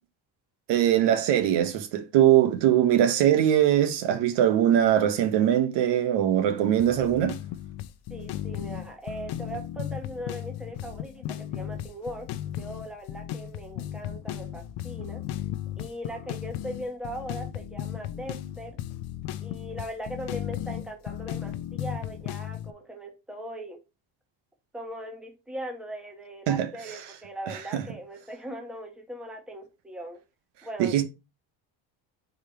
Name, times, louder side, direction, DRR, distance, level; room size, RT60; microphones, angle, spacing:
voice 1, 0.7-7.3 26.5-26.7 27.7-27.8 30.8-31.0, right 11 dB, 80° right, 1.3 m, -21 dB
sound 1, 6.8-22.7, left 11 dB, 70° left, 0.7 m, -35 dB
voice 2, 8.1-15.2 15.8-18.8 19.4-23.8 24.7-30.2 30.6-31.0, right 1 dB, ahead, 1.2 m, -39 dB
5.1 x 4.7 x 4.4 m
cardioid pair, 175°, 41 cm